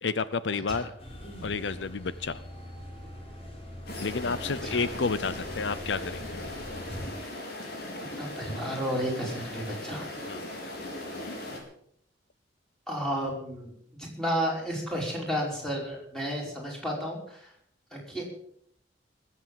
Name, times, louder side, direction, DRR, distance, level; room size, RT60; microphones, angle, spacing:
voice 1, 0.0-0.9 1.4-2.4 4.0-6.4 10.3-10.4, left 4 dB, 75° left, 15 dB, 0.7 m, -30 dB
sound 1, 1.0-7.1, left 1 dB, 35° left, 3.9 m, -42 dB
sound 2, 3.9-11.6, left 1 dB, 55° left, 4.5 m, -38 dB
voice 2, 8.2-10.1 12.9-17.5 17.9-18.3, equal, 5° left, -3 dB, 5.4 m, -32 dB
20.5 x 8.3 x 7.1 m, 0.68 s
head